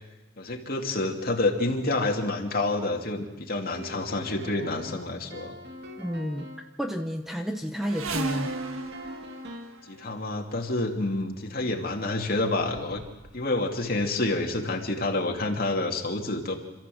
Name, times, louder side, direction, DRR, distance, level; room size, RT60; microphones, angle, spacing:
voice 1, 0.4-5.5 9.8-13.0 13.3-16.5, left 2 dB, 45° left, 2 dB, 2.6 m, -28 dB
sound 1, 3.7-6.7 8.4-9.8, equal, 55° right, 2.3 m, -43 dB
voice 2, 6.0-8.5, equal, ahead, 5 dB, 0.9 m, -31 dB
sound 2, 7.8-10.3 11.3-11.5 12.2-12.3 12.6-13.5 13.8-14.3 15.0-15.1 15.4-15.5, right 2 dB, 85° right, 1.7 m, -36 dB
27.5 x 14.0 x 7.8 m, 1.1 s
head